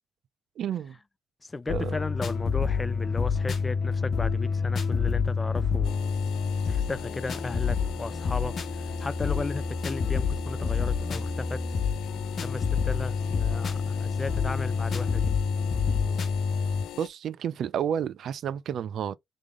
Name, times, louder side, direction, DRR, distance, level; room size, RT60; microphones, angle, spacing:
voice 1, 0.6-1.0 1.7-1.9 17.0-19.2, right 9 dB, 65° right, 0.3 m, -30 dB
voice 2, 1.4-6.0 6.7-11.6 12.4-15.3, left 3 dB, 25° left, 0.3 m, -35 dB
sound 1, 1.7-16.9, left 5 dB, 50° left, 0.9 m, -28 dB
sound 2, 5.8-17.1, left 12 dB, 90° left, 0.6 m, -42 dB
3.5 x 3.3 x 3.6 m
cardioid pair, 90°, 0 cm